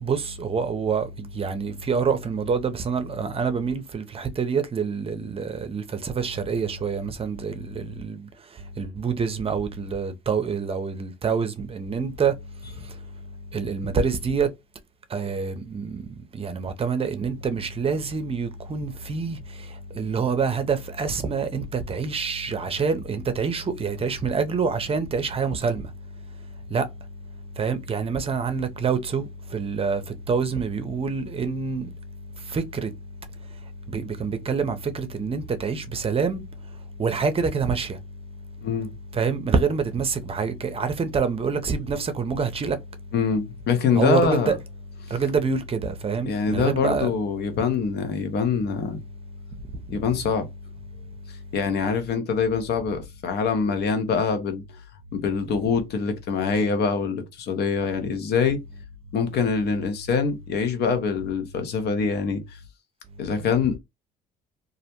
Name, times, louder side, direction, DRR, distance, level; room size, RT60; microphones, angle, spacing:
voice 1, 0.0-8.2 8.8-12.3 13.5-14.5 15.1-16.0 16.4-19.4 20.0-25.9 26.7-26.9 27.6-30.0 30.3-31.9 32.5-32.9 33.9-36.4 37.0-37.9 39.1-42.8 43.9-44.6 45.1-47.1, right 5 dB, 30° right, 0.6 m, -26 dB
voice 2, 43.1-44.5 45.0-45.1 46.2-49.0 49.9-50.5 51.5-54.6 55.1-58.6 59.1-62.6 63.2-63.8, left 5 dB, 60° left, 0.8 m, -24 dB
2.4 x 2.1 x 2.9 m
hypercardioid pair, 65°, 19 cm